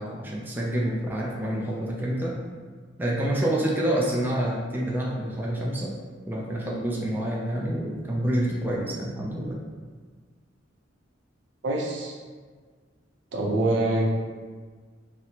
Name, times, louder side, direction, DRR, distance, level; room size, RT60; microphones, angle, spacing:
voice 1, 0.0-2.4 3.0-5.9 6.3-9.6, right 1 dB, 10° right, -4 dB, 0.4 m, -27 dB
voice 2, 11.6-12.2 13.3-14.2, right 1 dB, 70° right, -1 dB, 0.6 m, -25 dB
4.4 x 2.0 x 2.7 m, 1.5 s
head